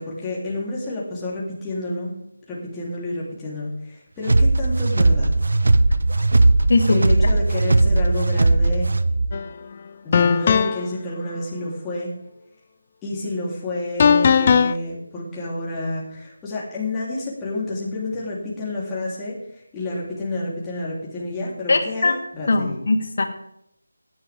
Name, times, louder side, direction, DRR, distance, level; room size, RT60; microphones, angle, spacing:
voice 1, 0.0-2.1 2.5-5.3 6.9-8.9 10.0-12.1 13.0-22.8, left 2 dB, 10° left, -7 dB, 3.6 m, -29 dB
sound 1, 4.3-9.3, right 2 dB, 60° right, 0.8 m, -18 dB
voice 2, 6.7-7.0 21.7-22.2 22.5-23.2, left 3 dB, 50° left, 6 dB, 1.9 m, -20 dB
sound 2, 9.3-9.5 10.1-10.9 14.0-14.7, left 6 dB, 30° left, 0.4 m, -17 dB
17.0 x 10.5 x 3.7 m, 0.78 s
figure-of-eight pair, 160°, 0 cm